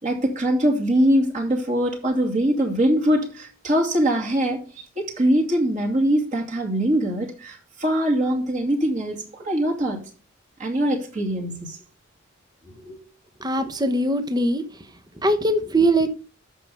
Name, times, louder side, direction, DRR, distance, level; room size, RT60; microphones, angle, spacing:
voice 1, 0.0-4.6 5.0-10.0 10.6-11.8 12.8-13.0, equal, 35° right, 2.5 m, -22 dB
voice 2, 13.4-14.6 15.2-16.1, right 1 dB, 20° right, 1.0 m, -21 dB
13.5 x 5.6 x 3.5 m
head